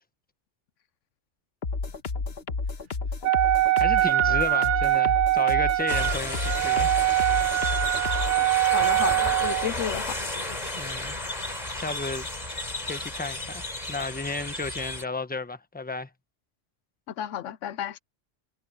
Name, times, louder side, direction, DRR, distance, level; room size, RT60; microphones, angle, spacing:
sound 1, 1.6-8.4, left 4 dB, 55° left, 1.5 m, -31 dB
Wind instrument woodwind instrument, 3.2-9.7, right 16 dB, 75° right, 1.0 m, -23 dB
voice 1, 3.8-6.9 10.8-11.1 11.7-13.6 13.9-16.1, left 3 dB, 10° left, 1.0 m, -33 dB
sound 2, 5.9-15.0, left 2 dB, 30° left, 3.4 m, -33 dB
voice 2, 8.7-10.2 17.1-18.0, left 9 dB, 80° left, 1.0 m, -32 dB
omnidirectional pair, 1.3 m